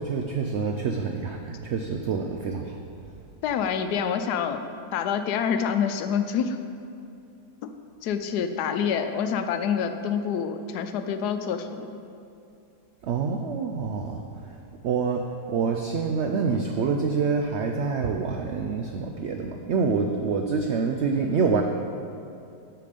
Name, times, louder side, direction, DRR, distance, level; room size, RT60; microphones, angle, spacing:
voice 1, 0.0-2.8 13.0-14.2 14.8-21.6, right 5 dB, 80° right, 4 dB, 0.6 m, -26 dB
voice 2, 3.4-4.6 4.9-6.6 8.0-11.9, left 7 dB, 80° left, 8 dB, 1.1 m, -27 dB
8.5 x 5.9 x 5.1 m, 2.6 s
omnidirectional pair, 1.7 m